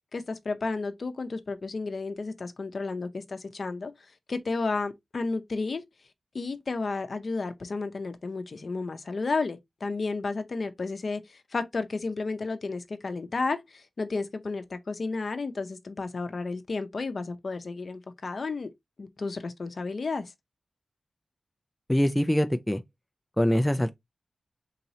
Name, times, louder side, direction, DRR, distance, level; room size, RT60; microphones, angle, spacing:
voice 1, 0.1-3.9 4.3-5.8 6.3-18.7 19.0-20.3, left 3 dB, 60° left, 0.6 m, -32 dB
voice 2, 21.9-22.8 23.4-24.0, equal, 10° left, 0.3 m, -24 dB
3.9 x 3.0 x 2.7 m
wide cardioid pair, 75°, 0 cm